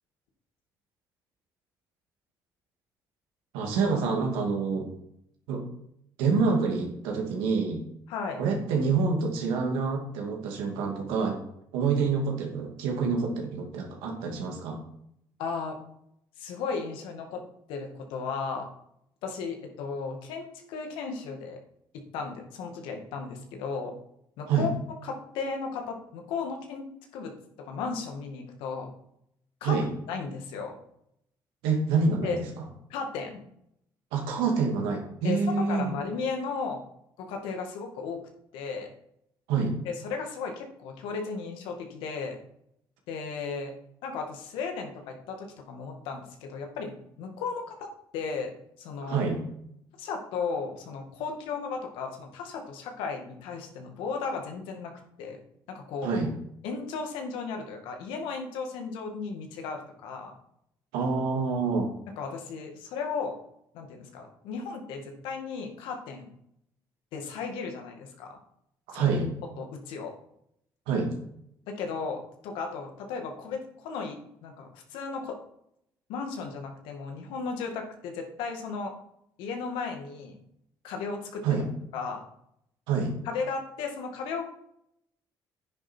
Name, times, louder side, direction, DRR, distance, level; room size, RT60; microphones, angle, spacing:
voice 1, 3.5-4.9 5.5-5.6 6.2-7.8 8.4-11.4 11.7-14.8 24.5-24.7 29.6-29.9 31.6-32.4 34.1-35.9 39.5-39.7 49.0-49.4 56.0-56.3 60.9-61.9 68.9-69.3 70.9-71.1 81.4-81.7 82.9-83.1, right 4 dB, 90° right, 1 dB, 2.6 m, -27 dB
voice 2, 8.1-8.4 15.4-15.8 16.4-17.4 17.7-18.7 19.2-21.6 21.9-23.9 24.4-24.7 25.0-26.8 27.1-27.3 27.6-28.9 29.6-29.8 30.1-30.8 32.2-32.4 32.9-33.4 35.2-35.4 35.7-36.8 37.2-38.2 38.5-38.9 39.9-42.4 43.1-43.7 44.0-47.9 48.1-48.5 48.8-49.3 50.0-54.9 55.2-55.4 55.7-56.1 56.6-60.3 62.2-63.4 63.7-66.3 67.1-68.4 68.9-69.1 69.6-70.1 71.7-75.4 76.1-78.9 79.4-80.4 80.8-81.4 81.9-82.2 83.2-84.4, left 5 dB, 85° left, 3 dB, 2.1 m, -35 dB
9.9 x 9.7 x 4.6 m, 0.73 s
supercardioid pair, 65°, 9 cm